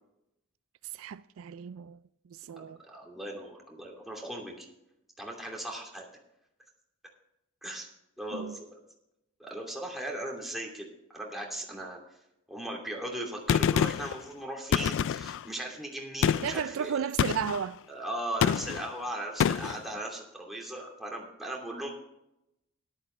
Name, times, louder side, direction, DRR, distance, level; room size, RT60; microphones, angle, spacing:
voice 1, 0.8-2.8 8.3-8.6 16.4-17.8, right 8 dB, 65° right, 0.3 m, -34 dB
voice 2, 2.6-4.7 5.2-6.1 7.6-7.9 8.2-8.8 9.4-10.9 11.1-12.0 12.5-17.0 17.9-21.9, right 1 dB, ahead, 2.7 m, -38 dB
Gunshot gunfire, 13.5-14.2 14.7-15.4 16.2-16.6 17.2-17.6 18.4-18.9 19.4-19.8, left 8 dB, 60° left, 0.3 m, -26 dB
14.0 x 11.5 x 3.3 m
head